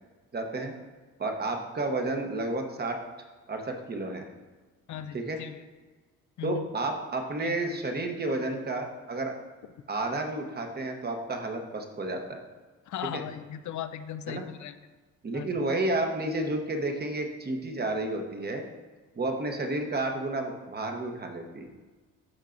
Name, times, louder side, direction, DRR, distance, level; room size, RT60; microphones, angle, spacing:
voice 1, 0.3-0.7 1.2-3.0 3.5-4.3 5.1-5.4 6.4-9.4 9.9-12.4 13.1-13.2 14.3-14.4 15.2-18.6 19.1-21.7, right 2 dB, 30° right, 4 dB, 1.0 m, -31 dB
voice 2, 4.9-5.6 6.4-6.7 7.4-7.8 12.9-14.8 15.3-15.5, left 9 dB, 55° left, 12 dB, 0.5 m, -38 dB
12.5 x 4.5 x 2.6 m, 1.3 s
cardioid pair, 100°, 34 cm